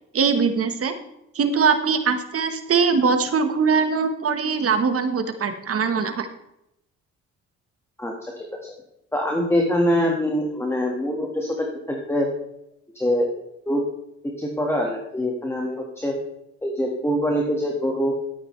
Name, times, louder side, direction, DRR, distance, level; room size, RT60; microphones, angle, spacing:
voice 1, 0.1-0.9 1.3-6.3, right 5 dB, 50° right, 8 dB, 1.3 m, -21 dB
voice 2, 8.0-8.7 9.1-12.3 12.9-13.3 13.6-13.8 14.4-16.1 16.6-18.1, equal, 10° left, 0 dB, 1.7 m, -24 dB
12.5 x 8.9 x 3.3 m, 0.83 s
cardioid pair, 90°, 30 cm